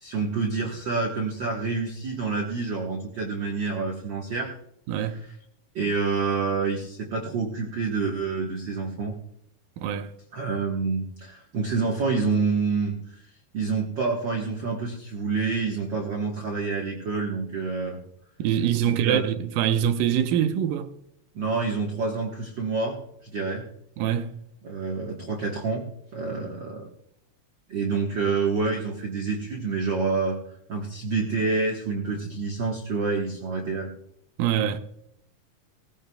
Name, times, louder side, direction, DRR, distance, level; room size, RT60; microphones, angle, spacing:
voice 1, 0.0-4.5 5.0-5.1 5.7-9.2 10.3-18.0 18.9-19.2 21.3-23.6 24.6-25.9 26.1-26.9 27.7-30.4 30.7-33.9, right 4 dB, 50° right, 1.4 m, -28 dB
voice 2, 4.9-5.2 9.8-10.1 18.4-20.9 24.0-24.4 34.4-34.8, right 10 dB, 85° right, 2.5 m, -24 dB
18.5 x 15.5 x 2.3 m
omnidirectional pair, 3.8 m